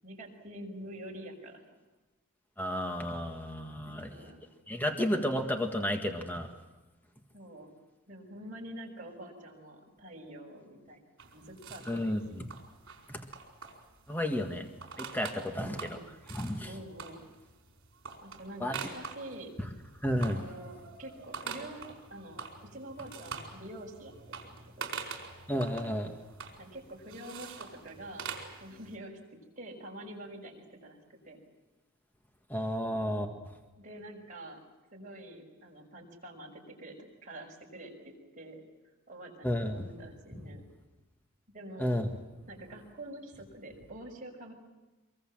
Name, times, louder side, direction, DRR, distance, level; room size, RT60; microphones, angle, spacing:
voice 1, 0.0-1.6 3.8-4.4 7.3-7.7 8.1-11.0 11.3-12.1 15.5-16.1 16.6-17.2 18.2-19.5 20.3-24.1 24.4-24.9 26.6-28.3 28.6-29.2 29.6-31.4 33.8-34.6 34.9-38.6 39.1-40.6 41.5-42.0 42.5-44.5, right 1 dB, 35° right, 0 dB, 6.0 m, -46 dB
voice 2, 2.6-4.3 4.7-6.5 11.9-12.5 13.1-13.2 14.1-14.7 15.0-16.0 16.3-16.7 18.6-18.8 20.0-20.4 25.5-26.1 32.5-33.3 39.4-39.9 40.3-40.4 41.8-42.1, equal, 10° left, 4 dB, 1.7 m, -32 dB
sound 1, 11.2-29.0, right 5 dB, 65° right, 4.8 m, -45 dB
24.5 x 24.0 x 7.6 m, 1.2 s
head